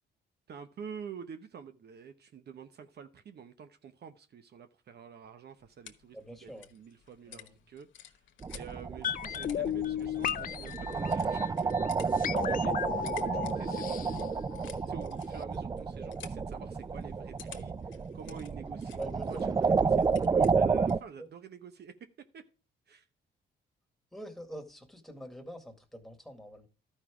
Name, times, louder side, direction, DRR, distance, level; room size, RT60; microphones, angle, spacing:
voice 1, 0.5-8.2 8.5-14.2 14.9-21.9 22.3-22.4 22.9-23.1, right 7 dB, 55° right, 0.9 m, -48 dB
sound 1, 5.2-21.1, left 10 dB, 70° left, 1.2 m, -54 dB
voice 2, 6.1-6.7 7.3-7.5 19.0-19.6 21.2-21.3 24.1-26.7, right 1 dB, ahead, 2.0 m, -45 dB
sound 2, 8.4-21.0, right 5 dB, 20° right, 0.3 m, -31 dB
sound 3, 9.0-15.1 15.4-15.5, left 10 dB, 45° left, 0.4 m, -35 dB
12.5 x 5.5 x 4.9 m
cardioid pair, 90°, 20 cm